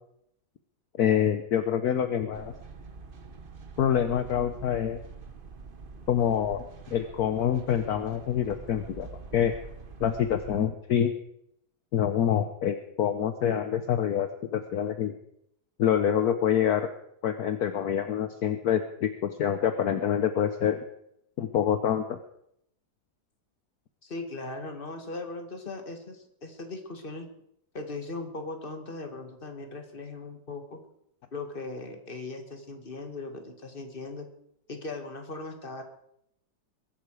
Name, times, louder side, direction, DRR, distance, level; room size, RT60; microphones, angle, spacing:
voice 1, 1.0-2.5 3.8-5.0 6.1-6.6 6.9-9.5 10.0-11.1 11.9-15.1 15.8-16.9 17.2-20.8 21.4-22.2, left 9 dB, 65° left, 9 dB, 1.3 m, -26 dB
sound 1, 2.3-10.6, right 4 dB, 35° right, 1.2 m, -45 dB
voice 2, 24.0-27.3 27.7-30.8 31.3-34.3 34.7-35.8, left 3 dB, 30° left, 5 dB, 2.2 m, -38 dB
22.0 x 11.5 x 4.9 m, 0.76 s
omnidirectional pair, 1.8 m